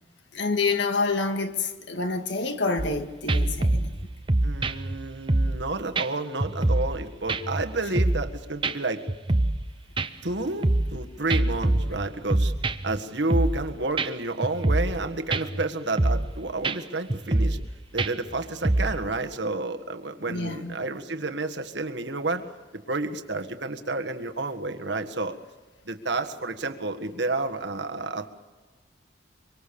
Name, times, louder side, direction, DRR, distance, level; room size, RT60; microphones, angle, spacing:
voice 1, 0.3-3.9 7.8-7.9 20.3-20.8, left 3 dB, 75° left, 2.0 m, -27 dB
sound 1, 2.8-3.0 3.3-5.7 5.9-6.1 6.4-7.0 7.3-8.3 8.6-8.7 9.1-9.7 10.0-11.0 11.3-13.0 13.3-13.7 14.0-14.1 14.4-15.0 15.3-15.6 16.0-16.3 16.6-16.8 17.1-17.7 18.0-19.0, right 2 dB, 25° right, 0.8 m, -25 dB
voice 2, 4.4-9.1 10.2-12.5 12.8-17.6 17.9-22.4 22.7-25.4 25.8-28.3, right 2 dB, 70° right, 1.7 m, -30 dB
25.0 x 24.0 x 7.1 m
head